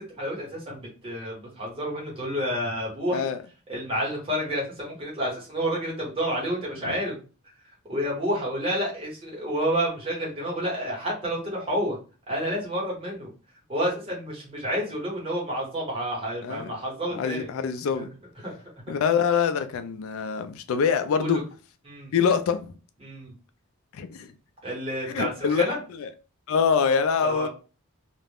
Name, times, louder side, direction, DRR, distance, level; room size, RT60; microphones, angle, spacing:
voice 1, 0.2-3.2 3.7-7.1 7.9-12.0 12.3-13.3 13.7-17.5 17.9-18.0 18.4-18.5 21.2-21.4 21.8-22.1 23.0-23.3 24.6-25.8 27.2-27.5, equal, 25° right, 1.1 m, -29 dB
voice 2, 16.4-16.7 17.1-18.1 18.9-21.4 22.1-22.6 23.9-24.3 25.1-25.6 25.9-26.1 26.5-27.5, left 6 dB, 75° left, 0.3 m, -24 dB
2.4 x 2.1 x 3.3 m
head